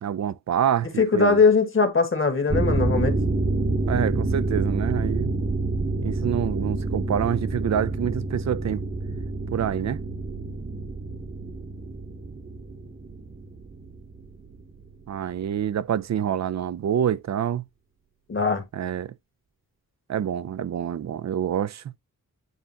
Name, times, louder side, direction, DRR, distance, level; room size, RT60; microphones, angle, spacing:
voice 1, 0.0-1.4 3.9-5.3 6.0-8.8 9.5-10.0 15.1-17.6 18.7-19.1 20.1-21.9, right 9 dB, 50° right, 0.5 m, -27 dB
voice 2, 1.0-3.2 18.3-18.6, left 4 dB, 35° left, 1.6 m, -20 dB
sound 1, 2.5-14.6 14.9-15.0, right 2 dB, 25° right, 0.9 m, -28 dB
9.2 x 3.7 x 2.8 m
wide cardioid pair, 135°, 35 cm